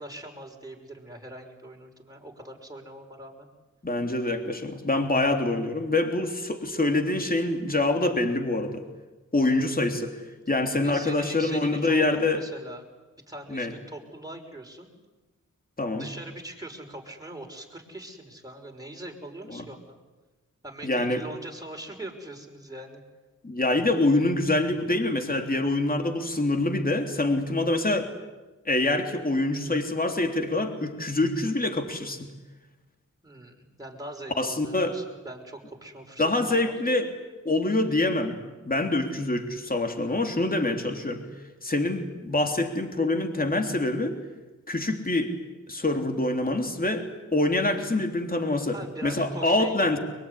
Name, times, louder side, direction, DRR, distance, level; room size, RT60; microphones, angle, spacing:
voice 1, 0.0-3.5 10.8-12.9 13.3-14.9 16.0-20.0 20.6-23.0 33.2-37.0 48.7-50.0, right 1 dB, 10° right, 1 dB, 5.9 m, -42 dB
voice 2, 3.8-8.8 9.3-10.1 10.5-12.4 13.5-13.7 15.8-16.1 19.5-19.7 20.8-21.2 23.4-28.1 28.6-32.3 34.4-35.0 36.2-37.1 37.4-38.4 38.6-41.2 41.6-44.1 44.7-45.3 45.7-47.1 47.3-50.0, left 2 dB, 30° left, 5 dB, 3.4 m, -25 dB
23.0 x 22.5 x 9.9 m, 1.2 s
cardioid pair, 60°, 31 cm